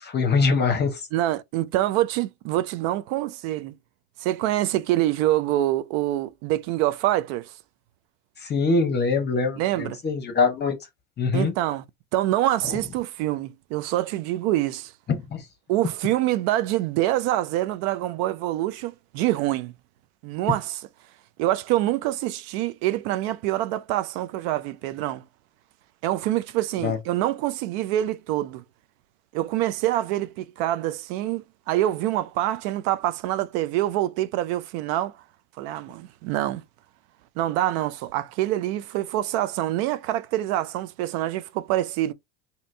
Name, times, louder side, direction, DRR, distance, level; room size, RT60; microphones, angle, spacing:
voice 1, 0.0-1.0 8.4-10.8 11.2-11.5 15.1-15.4 26.8-27.0, left 4 dB, 30° left, 0.8 m, -23 dB
voice 2, 1.1-3.8 4.2-7.5 9.6-10.0 11.3-11.8 12.1-14.9 15.7-19.7 20.2-20.9 21.4-25.2 26.0-28.6 29.3-35.1 35.6-36.6 37.4-42.1, right 14 dB, 70° right, 0.5 m, -25 dB
2.8 x 2.6 x 3.2 m
supercardioid pair, 95°, 35 cm